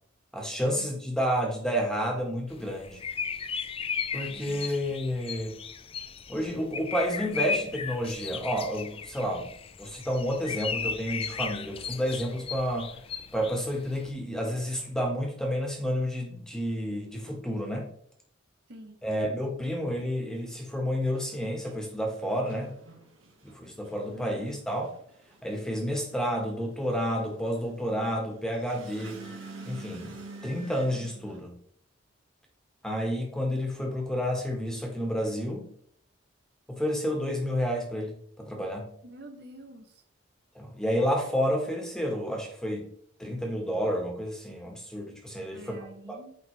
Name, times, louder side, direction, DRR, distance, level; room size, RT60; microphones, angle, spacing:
voice 1, 0.3-3.0 4.1-5.6 6.3-9.5 9.8-13.0 13.3-17.9 19.0-22.7 23.4-24.9 25.4-29.3 29.6-30.1 30.4-31.6 32.8-35.7 36.7-38.9 40.5-42.9 43.2-45.8 46.1-46.2, equal, 5° left, 0 dB, 1.6 m, -30 dB
sound 1, 2.5-14.1, left 6 dB, 30° left, 0.4 m, -36 dB
voice 2, 4.3-4.7 18.7-19.0 24.1-24.5 39.0-39.9 45.5-46.4, right 1 dB, 55° right, 5 dB, 0.9 m, -47 dB
sound 2, 21.0-31.4, right 3 dB, 90° right, 1.8 m, -47 dB
9.4 x 5.1 x 3.3 m, 0.65 s
head